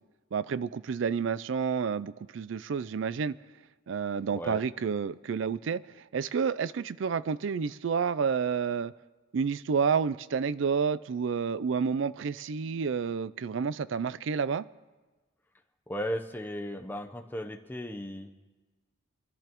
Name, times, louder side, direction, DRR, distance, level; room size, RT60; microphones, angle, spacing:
voice 1, 0.3-3.3 3.9-5.8 6.1-8.9 9.3-14.7, right 6 dB, 70° right, 17 dB, 0.4 m, -29 dB
voice 2, 15.9-18.4, equal, 10° left, 5 dB, 0.7 m, -36 dB
27.5 x 11.5 x 3.0 m, 1.2 s
head